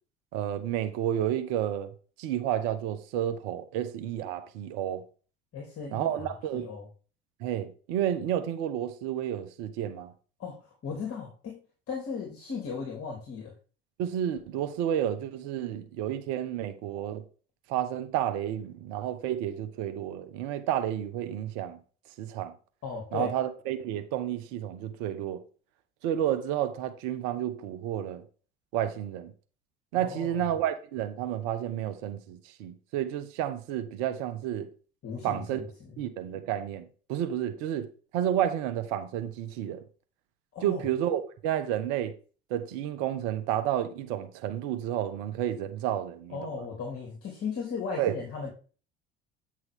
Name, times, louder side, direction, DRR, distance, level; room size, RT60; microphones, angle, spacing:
voice 1, 0.3-1.9 2.2-5.0 5.9-6.7 7.4-10.1 14.0-17.2 17.7-21.8 22.2-22.5 23.1-25.4 26.0-28.2 28.7-29.3 29.9-34.7 35.2-35.6 36.0-37.9 38.1-39.8 40.6-42.1 42.5-46.7 48.0-48.2, right 11 dB, 60° right, 1.3 m, -31 dB
voice 2, 5.5-6.9 10.4-11.6 11.9-13.5 22.8-23.3 29.9-30.5 35.0-35.9 40.5-40.8 46.3-48.5, left 5 dB, 40° left, 3.0 m, -37 dB
9.5 x 6.2 x 3.6 m
figure-of-eight pair, 60°, 34 cm